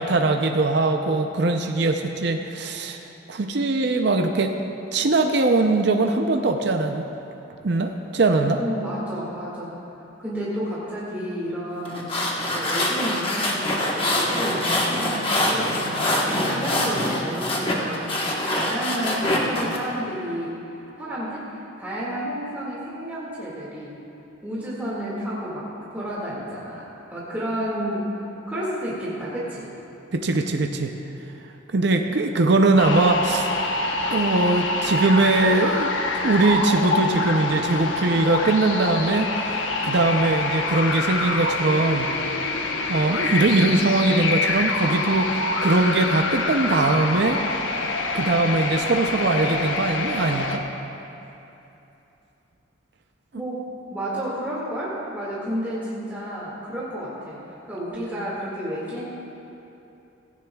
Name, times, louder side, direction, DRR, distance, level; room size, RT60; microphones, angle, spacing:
voice 1, 0.0-3.0 3.3-4.6 4.9-7.0 7.6-8.6 30.1-30.9 31.7-33.5 34.1-42.1 42.4-47.4 48.1-50.6, right 2 dB, 55° right, 4 dB, 0.6 m, -21 dB
voice 2, 8.6-9.8 10.2-12.1 12.5-20.6 21.0-24.0 24.4-26.8 27.1-28.1 28.5-29.7 53.3-53.6 53.9-59.0, equal, 10° right, -8 dB, 2.0 m, -31 dB
sound 1, 11.9-19.8, left 1 dB, 25° left, 1.2 m, -24 dB
sound 2, 32.8-50.6, left 2 dB, 75° left, 0.9 m, -26 dB
16.5 x 15.5 x 2.3 m, 2.9 s
head